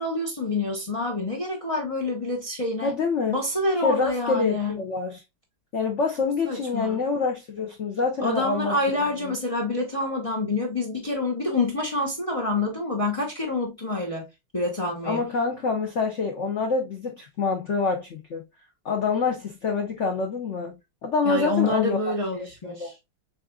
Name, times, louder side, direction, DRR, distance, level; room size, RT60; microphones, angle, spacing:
voice 1, 0.0-2.9 3.3-4.8 6.4-7.0 8.2-14.3 14.5-15.2 21.2-23.0, left 2 dB, 30° left, 0.6 m, -27 dB
voice 2, 2.8-3.4 3.8-5.2 5.7-8.7 9.2-9.3 15.0-18.4 18.8-20.8 21.0-22.0 22.4-22.9, left 4 dB, 75° left, 0.6 m, -26 dB
7.6 x 2.5 x 2.3 m
omnidirectional pair, 2.4 m